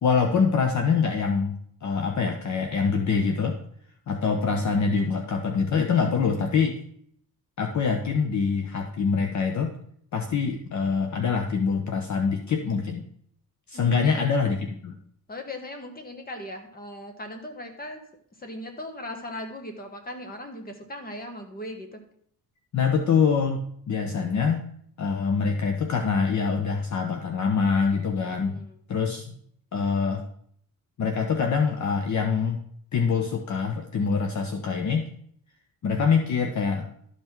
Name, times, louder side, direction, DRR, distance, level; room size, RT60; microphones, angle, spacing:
voice 1, 0.0-3.6 4.1-6.8 7.6-9.7 10.1-13.1 13.7-14.9 22.7-24.6 25.0-28.6 28.9-29.4 29.7-30.2 31.0-32.6 32.9-35.1 35.8-36.9, left 5 dB, 50° left, 4 dB, 0.9 m, -25 dB
voice 2, 13.7-14.3 15.3-18.0 18.4-22.0 28.4-28.7, left 1 dB, 25° left, 5 dB, 1.4 m, -38 dB
12.5 x 5.7 x 4.5 m, 0.65 s
wide cardioid pair, 165°, 37 cm